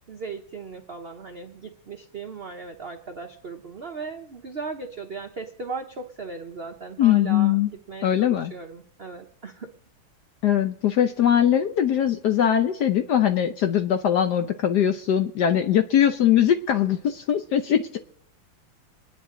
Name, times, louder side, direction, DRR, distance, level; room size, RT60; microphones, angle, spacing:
voice 1, 0.1-9.7, right 4 dB, 65° right, 4 dB, 0.6 m, -37 dB
voice 2, 7.0-7.7 8.0-8.5 10.4-18.0, left 10 dB, 70° left, 7 dB, 1.0 m, -21 dB
26.0 x 9.6 x 3.7 m, 0.70 s
omnidirectional pair, 2.3 m